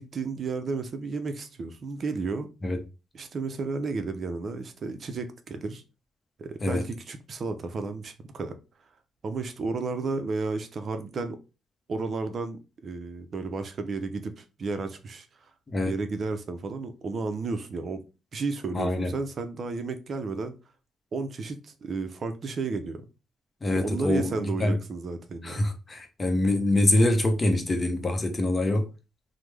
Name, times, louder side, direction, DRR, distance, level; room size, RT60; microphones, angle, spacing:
voice 1, 0.0-2.5 3.1-5.8 6.4-8.5 9.2-11.4 11.9-15.3 15.9-18.0 18.3-20.5 21.1-23.0 23.7-25.6, right 4 dB, 50° right, 0.4 m, -32 dB
voice 2, 18.7-19.1 23.6-24.8 25.4-28.9, left 1 dB, 30° left, 0.7 m, -25 dB
3.1 x 2.0 x 3.3 m
cardioid pair, 90°, 0 cm